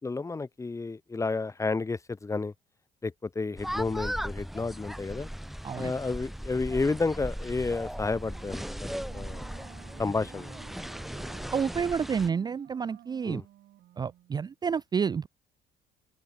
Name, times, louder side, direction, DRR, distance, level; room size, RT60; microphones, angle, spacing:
voice 1, 0.0-2.5 3.0-5.3 5.8-8.6 8.9-9.4 10.0-10.5 13.2-13.4, left 3 dB, 20° left, 1.3 m, -31 dB
sound 1, 3.6-12.3, equal, ahead, 1.4 m, -37 dB
Wind instrument woodwind instrument, 8.2-14.4, right 14 dB, 70° right, 6.0 m, -53 dB
voice 2, 11.5-13.4 14.0-15.3, right 6 dB, 25° right, 0.4 m, -29 dB
open air
cardioid pair, 110°, 17 cm